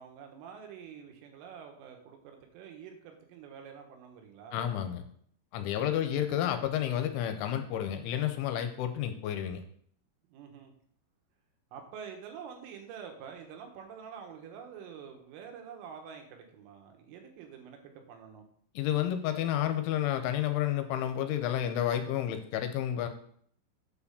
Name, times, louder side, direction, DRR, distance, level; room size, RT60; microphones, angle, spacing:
voice 1, 0.0-4.7 5.7-6.4 10.3-10.7 11.7-18.4, right 7 dB, 80° right, 4 dB, 3.8 m, -47 dB
voice 2, 4.5-5.0 5.5-9.6 18.8-23.1, left 11 dB, 80° left, 7 dB, 3.0 m, -30 dB
8.8 x 4.8 x 6.9 m, 0.62 s
omnidirectional pair, 5.8 m